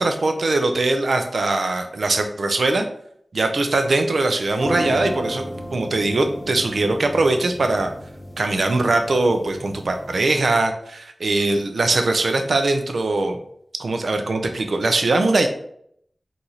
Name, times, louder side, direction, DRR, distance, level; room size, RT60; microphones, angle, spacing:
voice 1, 0.0-2.9 3.3-5.4 5.7-7.9 8.4-13.4 13.8-15.5, right 2 dB, 80° right, 6 dB, 0.4 m, -21 dB
sound 1, 4.5-10.4, equal, 10° left, 0.7 m, -33 dB
3.9 x 2.5 x 2.9 m, 0.68 s
wide cardioid pair, 65°, 0 cm